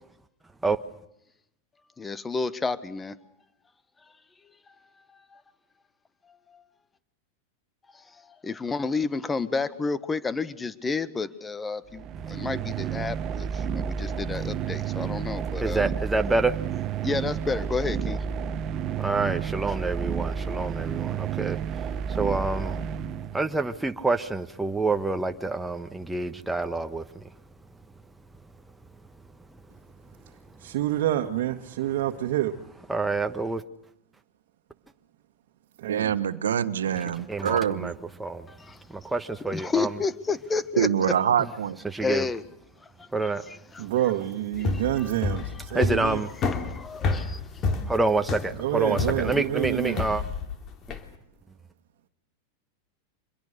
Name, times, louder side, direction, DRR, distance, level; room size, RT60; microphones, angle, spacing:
voice 1, 2.0-3.1 5.3-5.4 6.5-6.6 7.9-8.0 8.4-15.9 17.0-18.2 38.5-38.8 39.5-40.9 42.0-42.4 43.0-43.8 46.6-47.4, left 4 dB, 15° left, 1.4 m, -30 dB
sound 1, 11.9-23.7, right 7 dB, 40° right, 1.0 m, -31 dB
voice 2, 15.6-16.6 19.0-22.8 23.3-27.3 29.5-29.6 30.1-30.2 30.5-30.6 32.9-33.6 37.2-37.9 38.2-38.5 38.9-39.2 39.4-40.0 41.4-41.5 41.8-42.3 43.1-43.5 45.7-46.3 47.9-50.2 50.9-51.0, right 3 dB, 5° right, 1.3 m, -28 dB
voice 3, 30.6-32.6 35.8-36.2 43.8-46.2 48.6-50.1, right 13 dB, 65° right, 1.7 m, -27 dB
voice 4, 35.9-37.9 40.8-41.8, right 9 dB, 85° right, 1.2 m, -25 dB
sound 2, 44.5-51.1, left 3 dB, 35° left, 3.2 m, -29 dB
26.0 x 22.0 x 6.7 m
hypercardioid pair, 110°, 0 cm